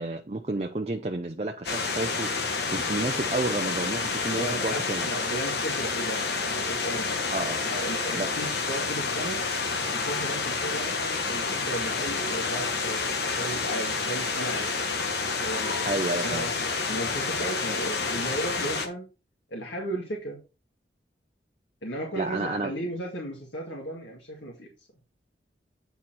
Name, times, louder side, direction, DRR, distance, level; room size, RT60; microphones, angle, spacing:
voice 1, 0.0-2.3 2.7-5.1 7.3-7.7 8.1-8.4 15.8-16.4 22.2-22.7, right 2 dB, 35° right, 0.6 m, -31 dB
sound 1, 1.6-18.9, left 4 dB, 65° left, 1.2 m, -29 dB
voice 2, 4.4-7.3 7.6-9.4 9.9-14.7 15.4-16.5 16.9-19.1 19.5-20.4 21.8-24.7, right 1 dB, 85° left, 2.1 m, -35 dB
9.1 x 4.3 x 4.3 m
head